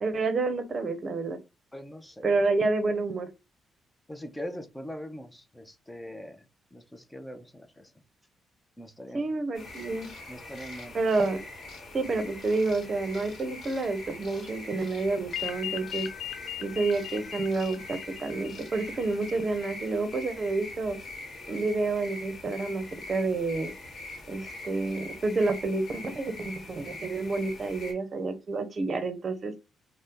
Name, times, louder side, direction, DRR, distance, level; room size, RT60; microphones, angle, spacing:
voice 1, 0.0-1.4 2.2-3.3 9.1-10.1 10.9-11.4 11.9-16.1 16.6-21.0 21.5-23.7 24.3-29.5, right 3 dB, 45° right, 0.6 m, -29 dB
voice 2, 1.7-2.3 4.1-6.5 6.7-7.9 8.8-9.3 10.3-11.0 14.3-14.5, equal, 10° left, 0.5 m, -42 dB
sound 1, 9.5-27.9, left 2 dB, 55° left, 1.2 m, -43 dB
sound 2, 15.3-19.4, left 12 dB, 75° left, 0.3 m, -38 dB
2.7 x 2.1 x 3.5 m
cardioid pair, 75°, 0 cm